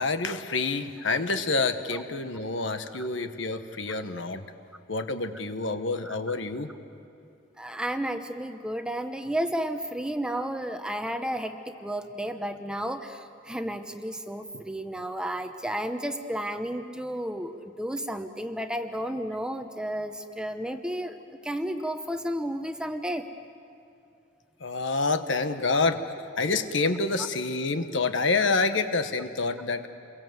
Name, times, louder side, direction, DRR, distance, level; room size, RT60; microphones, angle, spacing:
voice 1, 0.0-4.4 4.9-6.7 24.6-26.0 26.4-29.9, left 3 dB, 70° left, 9 dB, 1.2 m, -27 dB
voice 2, 6.0-6.4 7.6-23.3, right 1 dB, 5° right, 7 dB, 0.9 m, -32 dB
28.5 x 22.5 x 7.9 m, 2.7 s
head